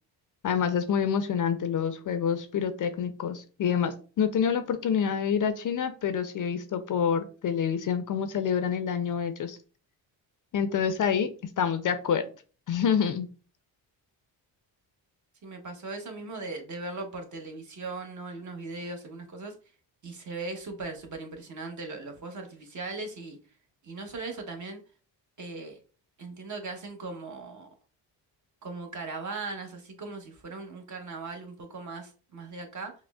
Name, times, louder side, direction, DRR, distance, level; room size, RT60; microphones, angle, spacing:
voice 1, 0.4-9.6 10.5-12.3 12.7-13.3, left 7 dB, 45° left, 10 dB, 0.4 m, -27 dB
voice 2, 15.4-19.5 20.0-23.4 23.8-24.8 25.4-25.8 26.2-27.7 28.6-32.9, right 3 dB, 40° right, 4 dB, 0.9 m, -38 dB
4.8 x 2.1 x 2.3 m, 0.38 s
cardioid pair, 80°, 45 cm